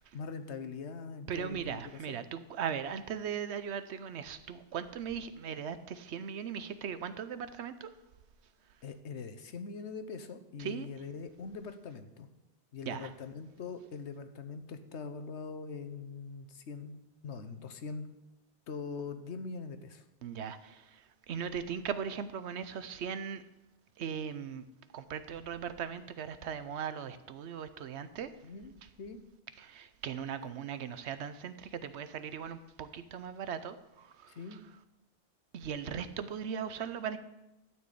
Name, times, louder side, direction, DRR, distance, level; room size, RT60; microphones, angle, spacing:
voice 1, 0.0-2.2 8.8-12.3 12.7-17.0 17.2-18.1 18.7-20.0 28.4-28.7 29.0-29.2 34.3-34.6, left 5 dB, 85° left, 9 dB, 1.2 m, -42 dB
voice 2, 1.3-7.9 10.6-10.9 12.9-13.1 20.2-23.4 24.0-24.7 24.9-28.3 29.6-34.3 35.5-37.2, right 7 dB, 75° right, 12 dB, 1.0 m, -38 dB
12.5 x 4.6 x 8.3 m, 0.95 s
omnidirectional pair, 1.1 m